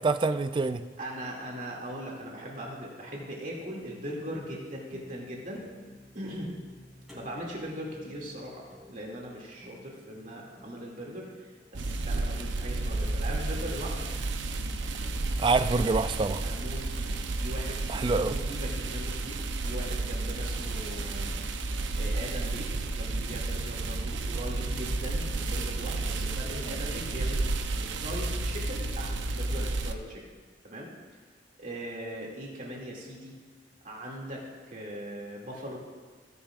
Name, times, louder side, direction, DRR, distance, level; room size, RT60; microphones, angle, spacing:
voice 1, 0.0-0.8 15.4-16.4 17.9-18.3, right 3 dB, 25° right, 11 dB, 0.3 m, -26 dB
voice 2, 1.0-5.6 6.1-6.5 7.1-14.1 16.4-21.3 21.9-27.5 27.8-30.2 30.6-30.9 31.6-33.4 33.8-35.8, equal, 45° right, -3 dB, 2.3 m, -40 dB
sound 1, 2.0-13.2, left 1 dB, ahead, 2.6 m, -54 dB
sound 2, 11.7-29.9, right 2 dB, 85° right, 0.6 m, -32 dB
16.0 x 9.8 x 2.5 m, 1.4 s
head